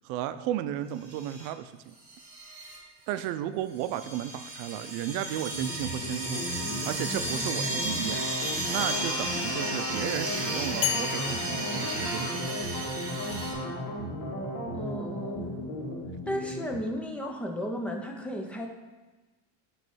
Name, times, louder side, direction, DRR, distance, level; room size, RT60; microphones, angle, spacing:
voice 1, 0.0-1.9 3.1-8.3 8.7-12.6, right 11 dB, 70° right, 12 dB, 0.6 m, -34 dB
sound 1, 1.0-1.5 2.0-2.8 3.1-3.3 3.8-13.5, right 1 dB, 35° right, 2.5 m, -34 dB
sound 2, 5.5-16.8, left 1 dB, 40° left, 1.8 m, -35 dB
sound 3, 10.8-12.9, left 13 dB, 80° left, 0.5 m, -34 dB
voice 2, 14.7-15.8 16.3-18.7, equal, 5° left, 2 dB, 0.4 m, -34 dB
9.2 x 3.2 x 6.1 m, 1.2 s
cardioid pair, 170°, 39 cm